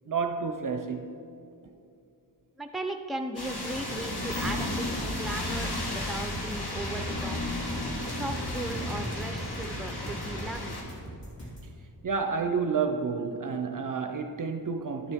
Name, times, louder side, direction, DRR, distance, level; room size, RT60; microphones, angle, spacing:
voice 1, 0.1-1.2 12.0-15.1, right 5 dB, 50° right, 0.5 m, -30 dB
voice 2, 2.6-7.4 8.0-10.8, right 2 dB, ahead, 0.6 m, -37 dB
sound 1, 3.4-10.8, left 1 dB, 60° left, 1.6 m, -33 dB
sound 2, 6.3-11.7, right 1 dB, 85° left, 2.2 m, -44 dB
12.0 x 6.9 x 3.5 m
wide cardioid pair, 80°, 42 cm